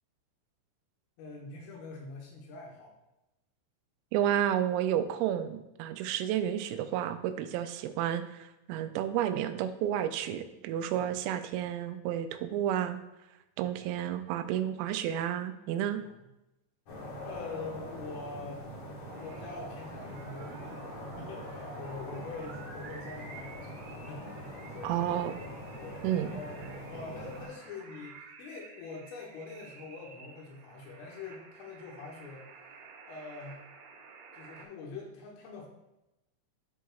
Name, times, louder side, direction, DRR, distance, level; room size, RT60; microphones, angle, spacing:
voice 1, 1.2-3.0 10.9-11.1 13.6-14.0 16.0-16.3 17.3-18.6 19.2-26.6 26.9-32.6 33.1-33.6 34.3-35.7, left 4 dB, 80° left, -1 dB, 3.6 m, -44 dB
voice 2, 4.1-13.0 13.6-16.0 24.8-25.3 26.0-26.4, right 10 dB, 90° right, 9 dB, 3.2 m, -31 dB
sound 1, 16.9-27.5, equal, 65° left, 1.8 m, -43 dB
sound 2, 19.1-34.7, right 4 dB, 70° right, 3.3 m, -51 dB
12.5 x 4.6 x 2.3 m, 0.93 s
omnidirectional pair, 5.8 m